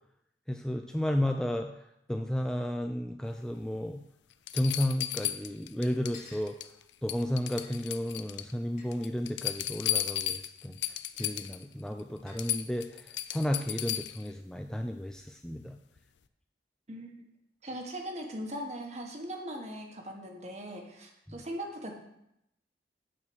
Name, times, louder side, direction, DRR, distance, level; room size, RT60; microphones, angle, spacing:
voice 1, 0.5-1.7 2.1-4.0 4.5-6.6 7.0-10.8 11.2-15.8 21.3-21.4, left 1 dB, 5° left, 5 dB, 0.3 m, -33 dB
sound 1, 3.8-3.9 4.5-6.2 6.5-6.8 7.1-8.5 8.9-11.6 12.0-12.1 12.4-14.3 16.0-16.1, left 13 dB, 85° left, 0.4 m, -34 dB
sound 2, 6.1-6.5 7.6-7.7 8.8-8.9 9.8-10.0 11.2-11.4 12.3-12.5, left 4 dB, 45° left, 2.3 m, -52 dB
voice 2, 16.9-17.3 17.6-21.9, equal, 40° right, 2 dB, 1.3 m, -40 dB
8.7 x 4.5 x 6.2 m, 0.81 s
head